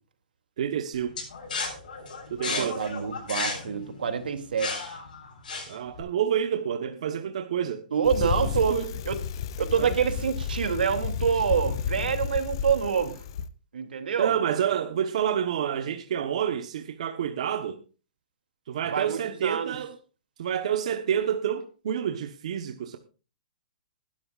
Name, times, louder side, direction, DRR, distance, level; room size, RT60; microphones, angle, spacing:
voice 1, 0.6-1.1 2.3-2.8 5.7-7.8 8.4-8.9 9.7-10.0 14.2-17.8 18.7-20.0 20.4-23.0, right 9 dB, 45° right, 1.1 m, -28 dB
sound 1, 1.2-6.0, left 4 dB, 65° left, 7.9 m, -34 dB
voice 2, 2.5-5.0 7.9-8.8 9.1-9.2 9.6-13.2 13.7-14.3 18.9-19.7, right 7 dB, 90° right, 2.7 m, -27 dB
Bicycle, 8.0-13.5, left 7 dB, 30° left, 0.7 m, -32 dB
19.5 x 12.0 x 2.5 m
hypercardioid pair, 180°, 5 cm